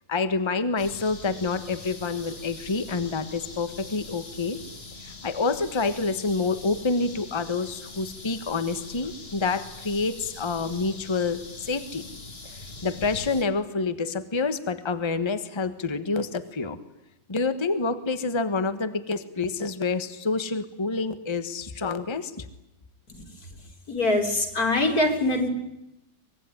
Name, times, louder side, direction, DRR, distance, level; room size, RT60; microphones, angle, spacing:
voice 1, 0.1-4.6 5.0-12.0 12.5-16.8 17.3-22.5, left 4 dB, 15° left, 11 dB, 1.3 m, -28 dB
sound 1, 0.8-13.4, left 3 dB, 30° left, 2.4 m, -43 dB
voice 2, 23.9-25.5, left 2 dB, 50° left, 5 dB, 4.2 m, -23 dB
24.5 x 22.0 x 9.9 m, 0.86 s
omnidirectional pair, 2.1 m